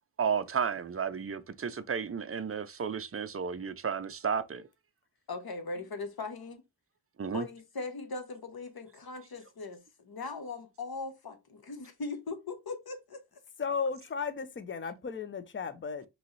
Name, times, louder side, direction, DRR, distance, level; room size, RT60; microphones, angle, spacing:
voice 1, 0.2-4.7 7.2-7.4, right 6 dB, 30° right, 0.5 m, -33 dB
voice 2, 5.3-6.6 7.3-13.2, left 3 dB, 50° left, 1.1 m, -40 dB
voice 3, 13.6-16.1, left 5 dB, 25° left, 0.6 m, -35 dB
5.2 x 3.1 x 3.1 m
wide cardioid pair, 90°, 49 cm